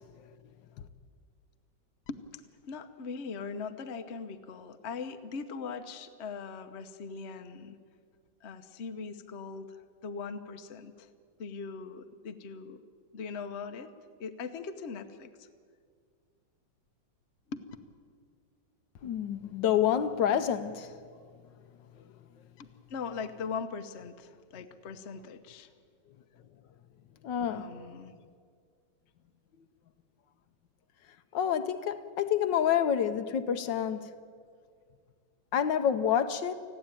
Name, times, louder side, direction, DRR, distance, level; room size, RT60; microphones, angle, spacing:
voice 1, 2.1-7.8 8.4-11.1 11.4-12.8 13.1-13.9 14.2-15.5 17.5-17.6 22.6-25.7 27.5-28.1, left 5 dB, 45° left, 1.0 m, -40 dB
voice 2, 19.0-20.9 27.2-27.7 31.3-34.1 35.5-36.5, left 9 dB, 70° left, 1.4 m, -28 dB
29.5 x 10.5 x 9.0 m
omnidirectional pair, 2.1 m